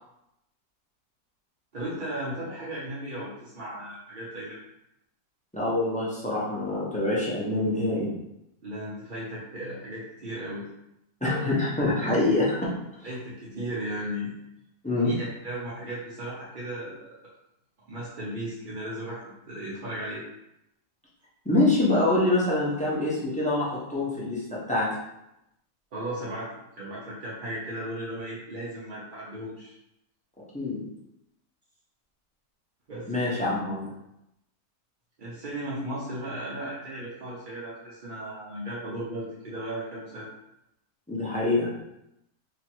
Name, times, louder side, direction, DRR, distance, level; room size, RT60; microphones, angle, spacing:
voice 1, 1.7-4.6 8.6-10.7 13.0-14.3 15.0-17.2 17.9-20.2 25.9-26.5 26.8-29.8 32.9-33.5 35.2-40.3, right 1 dB, 50° right, -7 dB, 0.6 m, -36 dB
voice 2, 5.5-8.1 11.2-12.7 13.0-13.1 14.8-15.1 21.4-24.9 30.5-30.8 33.1-33.9 41.1-41.7, left 2 dB, 5° left, -7 dB, 0.6 m, -25 dB
2.9 x 2.8 x 4.4 m, 0.85 s
omnidirectional pair, 1.8 m